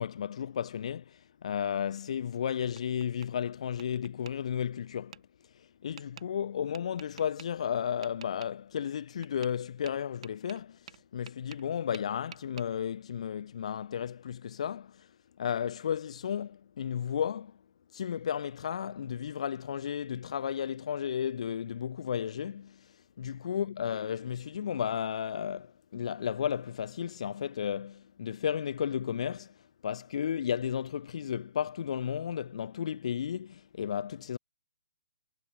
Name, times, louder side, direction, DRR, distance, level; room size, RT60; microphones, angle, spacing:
voice 1, 0.0-5.2 5.5-15.1 15.4-17.6 17.9-29.5 29.8-34.4, left 8 dB, 60° left, 1.3 m, -33 dB
Tap, 2.3-3.3 3.8-4.3 5.1-5.2 6.0-6.3 6.7-7.5 8.0-8.5 9.2-9.6 9.9-11.7 11.9-12.7, right 9 dB, 55° right, 5.7 m, -49 dB
hypercardioid pair, 135°, 4 cm